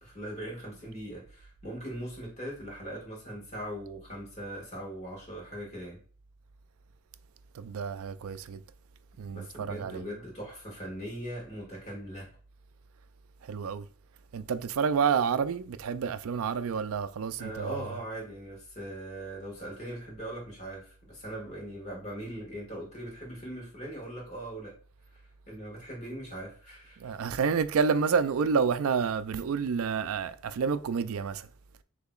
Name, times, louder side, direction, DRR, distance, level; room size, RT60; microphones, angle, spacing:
voice 1, 0.0-6.0 9.3-12.3 17.4-24.7 25.1-25.2 25.5-27.1, right 1 dB, 30° left, 1.8 m, -40 dB
voice 2, 7.5-8.6 9.2-10.1 13.4-13.9 14.3-17.8 27.0-31.5, right 6 dB, 70° right, 0.4 m, -29 dB
6.6 x 2.9 x 2.4 m
head